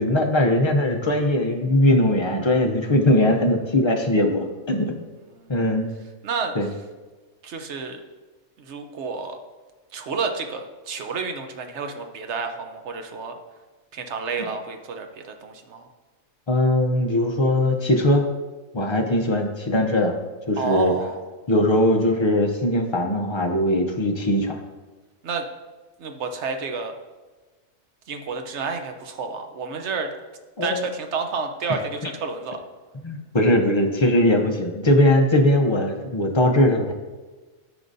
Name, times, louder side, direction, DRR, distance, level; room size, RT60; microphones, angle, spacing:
voice 1, 0.0-5.1 5.5-5.9 6.6-6.7 14.4-14.6 16.5-18.3 18.7-20.1 20.5-20.9 21.5-24.6 30.6-30.9 31.7-32.1 33.0-36.9, left 1 dB, 35° left, 3 dB, 0.4 m, -20 dB
voice 2, 6.2-6.5 7.4-8.0 8.6-9.4 9.9-13.3 13.9-15.9 20.6-21.2 25.2-25.5 26.0-27.0 28.1-30.1 30.6-32.6, right 4 dB, 60° right, 6 dB, 1.0 m, -30 dB
13.0 x 4.9 x 2.6 m, 1.3 s
omnidirectional pair, 1.4 m